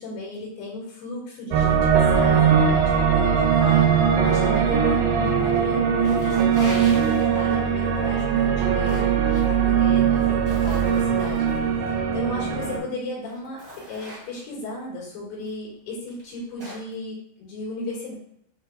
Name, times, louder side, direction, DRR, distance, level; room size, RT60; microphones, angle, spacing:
voice 1, 0.0-13.6 13.9-18.1, left 2 dB, 75° left, -5 dB, 3.7 m, -35 dB
sound 1, 1.5-12.8, right 7 dB, 80° right, 2.3 m, -20 dB
sound 2, 5.2-5.6 5.9-7.7 8.4-9.4 10.1-11.6 12.6-12.7 13.2-14.6 15.4-15.5 16.1-16.9, right 1 dB, 55° right, 0.9 m, -41 dB
7.5 x 2.9 x 2.3 m, 0.70 s
omnidirectional pair, 4.8 m